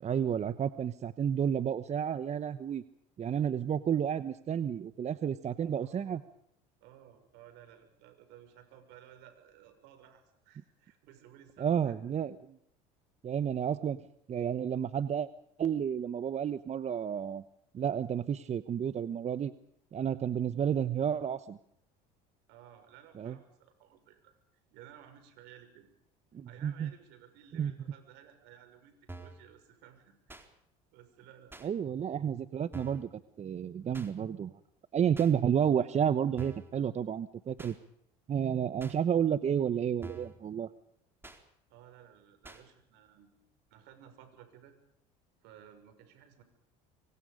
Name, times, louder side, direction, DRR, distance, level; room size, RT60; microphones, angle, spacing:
voice 1, 0.0-2.8 3.2-6.2 11.6-12.6 13.2-14.0 14.3-15.3 15.6-17.4 17.7-19.5 19.9-21.6 23.2-23.4 26.3-26.9 27.5-27.7 31.6-33.1 33.4-34.5 34.9-37.7 38.3-40.7, right 8 dB, 35° right, 13 dB, 1.1 m, -31 dB
voice 2, 5.8-6.2 6.8-12.0 22.5-24.3 24.7-25.9 26.4-30.4 30.9-31.6 41.7-43.3 43.7-44.8 45.4-46.4, right 10 dB, 70° right, 8 dB, 6.3 m, -56 dB
sound 1, 29.1-29.4 30.3-30.5 31.5-31.7 32.7-33.1 33.9-34.1 35.1-35.3 36.4-36.7 37.6-37.8 38.8-39.0 40.0-40.4 41.2-41.4 42.4-42.6, right 2 dB, 10° right, 4.3 m, -47 dB
26.5 x 24.0 x 5.3 m, 0.73 s
supercardioid pair, 85°, 18 cm